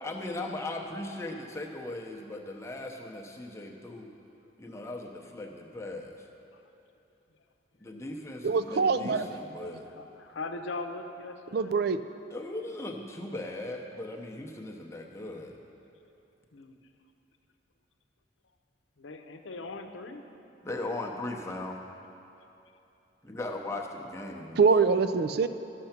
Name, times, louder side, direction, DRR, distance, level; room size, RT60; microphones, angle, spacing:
voice 1, 0.0-4.1 4.6-6.3 7.8-9.9 12.3-15.6 20.6-21.8 23.2-24.6, left 2 dB, 15° left, 0 dB, 0.7 m, -38 dB
voice 2, 8.4-9.3 11.5-12.0 24.6-25.5, right 5 dB, 55° right, 11 dB, 0.4 m, -24 dB
voice 3, 10.0-11.7 16.5-16.8 19.0-20.2, left 3 dB, 80° left, 6 dB, 0.7 m, -40 dB
12.0 x 6.6 x 5.8 m, 2.9 s
head